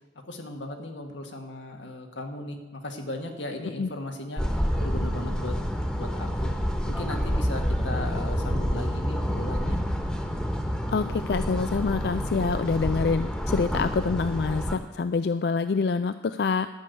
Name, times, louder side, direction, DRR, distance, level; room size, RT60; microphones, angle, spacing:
voice 1, 0.2-5.6 5.9-6.5 6.8-9.8, left 1 dB, 90° left, 4 dB, 1.7 m, -37 dB
sound 1, 4.4-14.8, equal, 5° left, 1.2 m, -28 dB
voice 2, 10.9-16.7, left 4 dB, 60° left, 11 dB, 0.4 m, -26 dB
11.5 x 7.0 x 9.4 m, 1.2 s
head